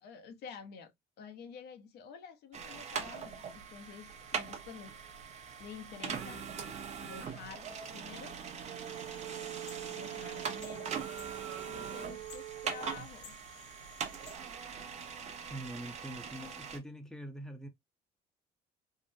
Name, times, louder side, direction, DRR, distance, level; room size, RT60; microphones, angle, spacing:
voice 1, 0.0-5.1 5.6-6.5 7.0-8.4 9.9-11.0 11.7-13.4, left 6 dB, 75° left, 0.7 m, -49 dB
sound 1, 2.5-16.8, right 6 dB, 40° right, 0.7 m, -42 dB
sound 2, 8.6-13.0, right 14 dB, 70° right, 0.4 m, -45 dB
sound 3, 8.8-14.4, left 7 dB, 90° left, 1.1 m, -57 dB
voice 2, 15.5-17.7, right 1 dB, 5° left, 0.7 m, -44 dB
3.7 x 2.1 x 2.6 m
cardioid pair, 110°, 17 cm